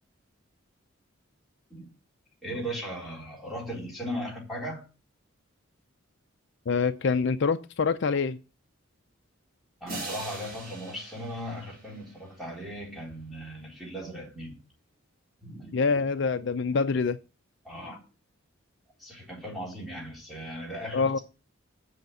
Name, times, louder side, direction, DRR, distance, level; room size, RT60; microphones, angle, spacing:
voice 1, 2.4-4.8 9.8-14.6 15.4-15.8 17.6-18.0 19.0-21.2, equal, ahead, 3.8 m, -37 dB
voice 2, 6.7-8.4 15.7-17.2 20.9-21.2, left 5 dB, 55° left, 0.4 m, -25 dB
sound 1, 9.9-12.7, right 2 dB, 45° right, 4.3 m, -42 dB
7.9 x 5.7 x 7.8 m
head